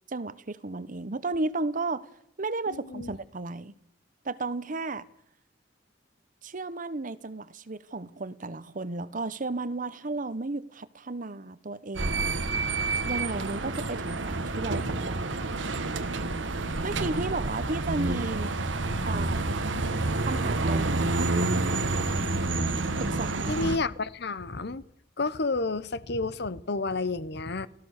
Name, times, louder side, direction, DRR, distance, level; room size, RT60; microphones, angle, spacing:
voice 1, 0.1-2.1 2.4-3.8 4.2-5.1 6.4-12.4 13.1-15.4 16.8-18.5 19.1-19.6 20.2-21.3 23.0-23.6, right 3 dB, 45° right, 0.9 m, -34 dB
sound 1, 12.0-23.8, right 2 dB, 80° right, 1.5 m, -28 dB
voice 2, 23.5-24.8 25.2-27.7, left 3 dB, 60° left, 0.9 m, -30 dB
29.5 x 15.0 x 6.6 m
head